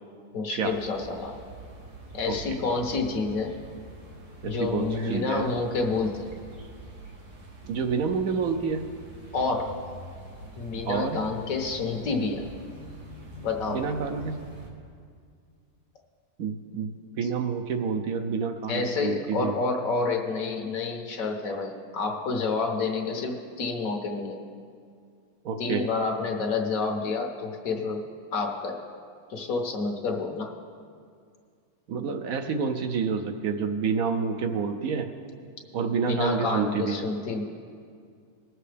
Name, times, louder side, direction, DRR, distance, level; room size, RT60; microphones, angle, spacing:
voice 1, 0.3-1.4 2.1-3.5 4.4-6.3 9.3-9.8 10.5-12.4 13.4-13.9 18.7-24.4 25.6-28.0 28.3-28.8 29.3-30.5 36.1-37.4, left 4 dB, 65° left, 3 dB, 1.4 m, -29 dB
sound 1, 0.6-14.7, right 1 dB, 90° right, 2.1 m, -45 dB
voice 2, 2.3-2.6 4.4-5.5 7.6-8.9 10.8-11.2 13.7-14.4 16.4-16.9 17.2-19.5 25.4-25.9 31.9-35.1 35.7-37.0, right 5 dB, 70° right, 7 dB, 1.1 m, -28 dB
20.0 x 7.6 x 3.4 m, 2.2 s
omnidirectional pair, 1.6 m